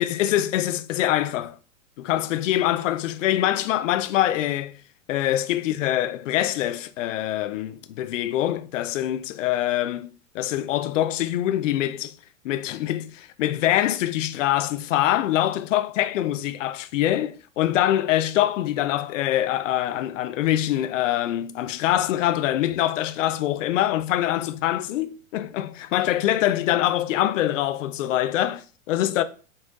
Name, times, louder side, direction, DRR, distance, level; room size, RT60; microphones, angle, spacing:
voice 1, 0.0-1.6 2.0-4.8 5.1-10.1 10.3-12.1 12.4-29.2, left 13 dB, 70° left, 0.5 m, -24 dB
4.1 x 3.9 x 2.4 m
hypercardioid pair, 115°, 40 cm